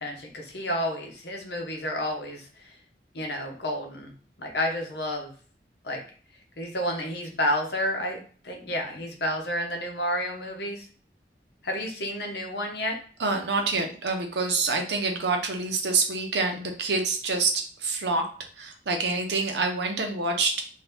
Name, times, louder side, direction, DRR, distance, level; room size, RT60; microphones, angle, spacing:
voice 1, 0.0-2.7 3.1-4.1 4.4-5.3 5.8-6.0 6.6-10.8 11.6-13.0, left 1 dB, 75° left, 2 dB, 0.9 m, -30 dB
voice 2, 13.2-18.2 18.6-20.6, right 3 dB, 80° right, 3 dB, 0.7 m, -26 dB
2.8 x 2.7 x 3.4 m, 0.43 s
head